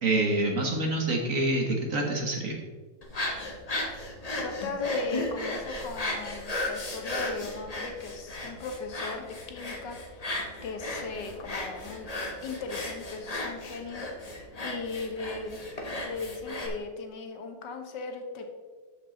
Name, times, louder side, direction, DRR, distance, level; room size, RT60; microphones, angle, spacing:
voice 1, 0.0-2.6, right 2 dB, 45° right, 1 dB, 1.3 m, -26 dB
sound 1, 3.0-16.7, left 2 dB, 30° left, 0.6 m, -35 dB
voice 2, 4.3-10.3 10.6-12.1 12.4-14.1 14.6-15.6 16.0-18.5, left 4 dB, 60° left, 5 dB, 1.6 m, -37 dB
12.5 x 5.3 x 3.9 m, 1.4 s
omnidirectional pair, 2.4 m